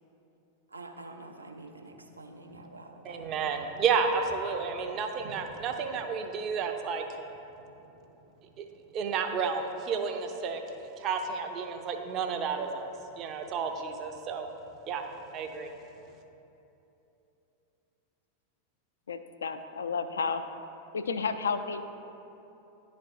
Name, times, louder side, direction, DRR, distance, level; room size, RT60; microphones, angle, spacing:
voice 1, 0.7-3.3, right 2 dB, 80° right, 3 dB, 0.5 m, -47 dB
voice 2, 3.0-7.0 8.6-8.7 8.9-10.6 11.0-14.5 14.9-15.0 15.3-15.7, right 5 dB, 35° right, 4 dB, 0.5 m, -31 dB
voice 3, 19.1-20.4 20.9-21.8, left 5 dB, 70° left, 9 dB, 0.3 m, -31 dB
11.0 x 4.1 x 2.5 m, 2.9 s
figure-of-eight pair, 90°, 0 cm